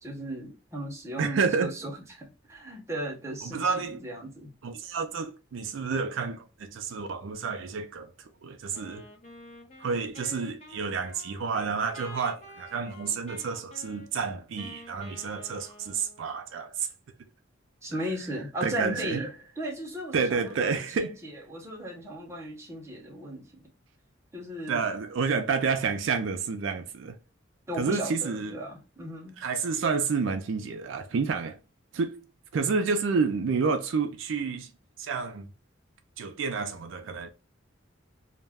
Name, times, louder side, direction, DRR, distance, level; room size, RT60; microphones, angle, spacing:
voice 1, 0.0-4.5 17.8-23.6 24.3-24.9 27.7-29.4, right 1 dB, 15° right, 0.7 m, -36 dB
voice 2, 1.2-1.7 3.4-4.0 4.6-8.1 8.4-9.1 9.8-16.9 18.6-19.2 20.1-21.2 24.7-27.2 27.8-28.6 29.4-31.6 31.9-32.2 32.5-34.7 35.0-35.5 36.2-37.3, right 5 dB, 75° right, 0.4 m, -29 dB
Wind instrument woodwind instrument, 8.7-16.4, left 2 dB, 35° left, 0.7 m, -48 dB
2.3 x 2.1 x 3.4 m
head